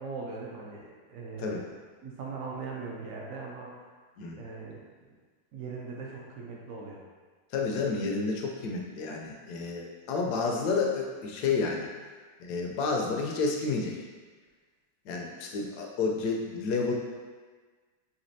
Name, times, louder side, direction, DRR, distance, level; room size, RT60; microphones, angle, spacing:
voice 1, 0.0-1.6 2.0-3.8 4.4-4.8 5.5-7.0, right 4 dB, 80° right, -3 dB, 0.7 m, -40 dB
voice 2, 7.5-11.9 12.4-14.0 15.1-16.9, left 4 dB, 70° left, 0 dB, 1.0 m, -30 dB
4.1 x 3.3 x 2.6 m, 1.4 s
omnidirectional pair, 2.0 m